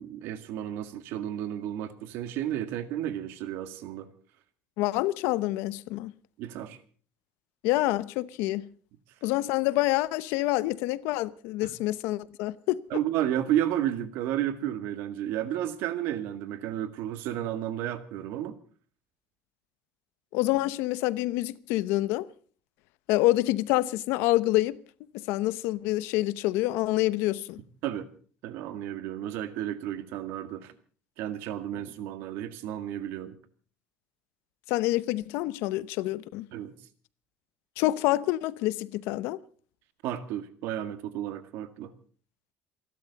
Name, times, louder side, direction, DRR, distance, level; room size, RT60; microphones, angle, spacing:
voice 1, 0.0-4.1 6.4-6.8 11.6-11.7 12.9-18.5 27.8-28.1 28.4-30.7 31.2-33.4 36.5-36.7 40.0-41.9, right 11 dB, 70° right, 1.9 m, -32 dB
voice 2, 4.8-6.1 7.6-8.6 9.2-12.8 20.3-22.3 23.1-24.8 25.1-27.6 34.7-36.5 37.8-39.4, left 17 dB, 90° left, 0.8 m, -27 dB
28.0 x 12.0 x 4.1 m
cardioid pair, 165°, 4 cm